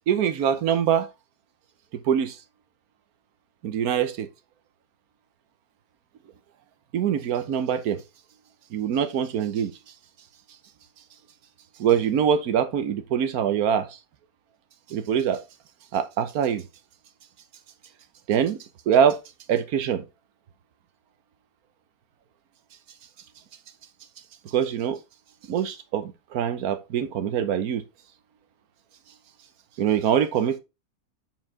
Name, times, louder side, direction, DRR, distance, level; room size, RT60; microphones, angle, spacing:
voice 1, 0.1-1.1 2.0-2.4 3.6-4.3 6.9-8.0 8.7-9.7 11.8-13.9 14.9-15.4 15.9-16.6 18.3-18.6 18.9-19.2 19.5-20.0 24.4-25.0 25.5-27.8 29.8-30.6, right 8 dB, 70° right, 1.3 m, -23 dB
7.8 x 4.7 x 3.6 m
omnidirectional pair, 1.7 m